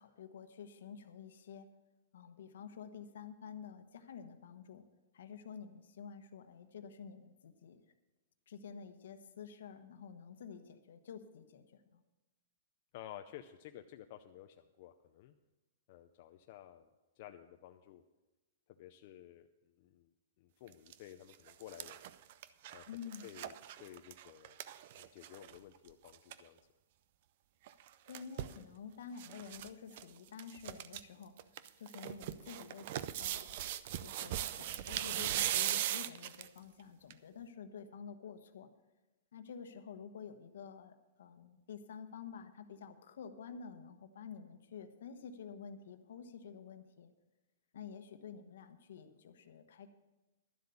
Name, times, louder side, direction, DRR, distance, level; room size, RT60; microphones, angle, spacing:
voice 1, 0.0-1.7 2.1-4.8 5.1-7.9 8.5-12.0 22.9-23.3 28.0-31.3 31.8-33.6 34.0-38.7 39.3-47.1 47.7-49.9, left 6 dB, 70° left, 9 dB, 1.1 m, -50 dB
voice 2, 12.9-15.3 15.9-16.9 17.2-18.0 18.8-20.1 20.4-22.0 22.7-23.5 23.8-24.6 24.9-26.6, left 12 dB, 40° left, 6 dB, 0.5 m, -53 dB
sound 1, 20.7-20.9 21.3-25.6 25.9-26.0 26.1-26.4 27.7-28.6 29.2-29.7 29.9-30.0 30.4-31.0 31.4-36.6 37.1-37.2, right 12 dB, 45° right, 0.5 m, -39 dB
12.0 x 7.7 x 7.0 m, 1.1 s
hypercardioid pair, 165°, 0 cm